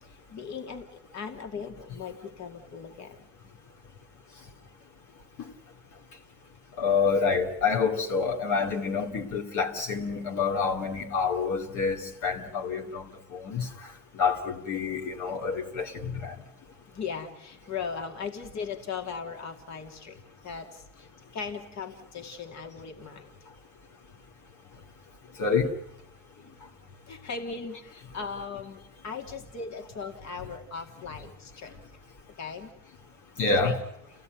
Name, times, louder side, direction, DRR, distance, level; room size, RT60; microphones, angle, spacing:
voice 1, 0.0-3.3 16.9-21.1 21.3-23.3 26.4-26.6 27.1-31.7 32.4-32.7 33.6-33.7, left 5 dB, 65° left, 2.5 m, -38 dB
voice 2, 6.8-13.7 14.1-16.3 25.4-25.7 33.4-33.8, left 5 dB, 80° left, 2.6 m, -27 dB
29.5 x 16.5 x 9.3 m
cardioid pair, 90°, 30 cm